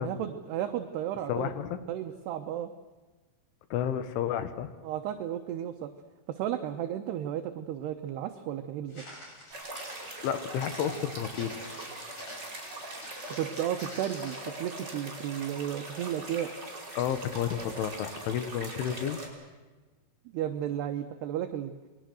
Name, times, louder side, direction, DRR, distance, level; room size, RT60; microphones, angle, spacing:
voice 1, 0.0-1.5 1.9-2.7 4.8-5.9 6.3-9.0 13.3-16.5 20.3-21.7, right 11 dB, 75° right, 6 dB, 2.7 m, -33 dB
voice 2, 1.3-1.8 3.7-4.7 10.2-11.7 17.0-19.2, left 9 dB, 80° left, 11 dB, 3.9 m, -31 dB
Walk footsteps, 8.9-14.6, left 1 dB, 30° left, 7.1 m, -48 dB
sound 1, 9.5-19.3, right 2 dB, 20° right, 5.1 m, -41 dB
28.5 x 22.0 x 6.4 m, 1.3 s
omnidirectional pair, 5.6 m